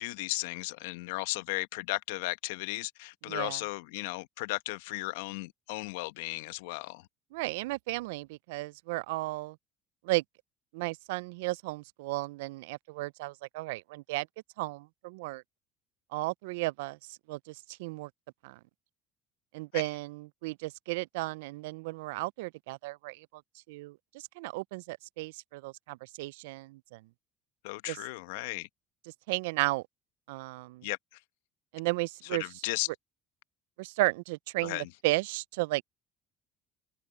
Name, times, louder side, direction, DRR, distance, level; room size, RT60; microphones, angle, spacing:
voice 1, 0.0-7.1 19.7-19.8 27.6-28.7 30.8-31.0 32.3-32.9 34.6-34.9, left 21 dB, 85° left, 0.9 m, -35 dB
voice 2, 3.3-3.6 7.3-9.6 10.0-10.2 10.7-14.3 14.6-15.4 16.1-18.1 18.4-18.6 19.5-23.4 23.7-24.0 24.4-27.0 27.9-28.0 29.3-29.8 30.3-30.9 31.7-32.4 33.8-35.8, right 22 dB, 85° right, 0.3 m, -34 dB
hypercardioid pair, 75°, 0 cm